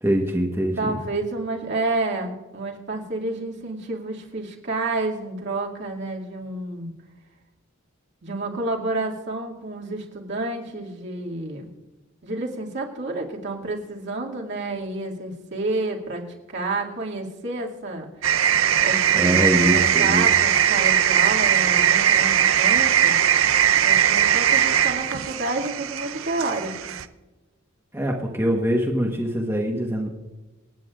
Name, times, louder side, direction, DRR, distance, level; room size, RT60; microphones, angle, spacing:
voice 1, 0.0-1.0 19.1-20.3 27.9-30.1, equal, 10° right, 0 dB, 1.3 m, -23 dB
voice 2, 0.8-6.9 8.2-11.7 12.2-18.1 18.8-23.2 23.8-26.9, right 2 dB, 60° right, -1 dB, 2.4 m, -30 dB
sound 1, 18.2-27.0, right 9 dB, 80° right, 0.6 m, -20 dB
27.0 x 9.5 x 2.5 m, 1.1 s
head